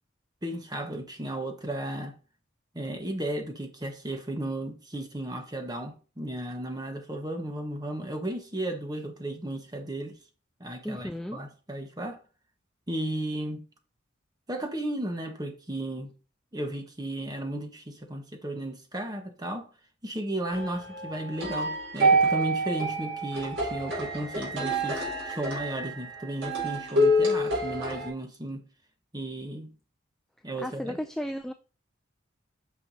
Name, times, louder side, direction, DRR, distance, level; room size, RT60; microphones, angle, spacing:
voice 1, 0.4-2.1 2.7-10.2 10.6-12.2 12.9-13.6 14.5-16.1 16.5-19.7 20.0-28.6 29.1-29.7 30.4-31.0, right 1 dB, 20° right, 1.2 m, -34 dB
voice 2, 10.8-11.4 30.6-31.5, equal, ahead, 0.3 m, -34 dB
sound 1, 20.5-28.1, right 1 dB, 70° right, 4.2 m, -27 dB
9.0 x 5.7 x 2.7 m
head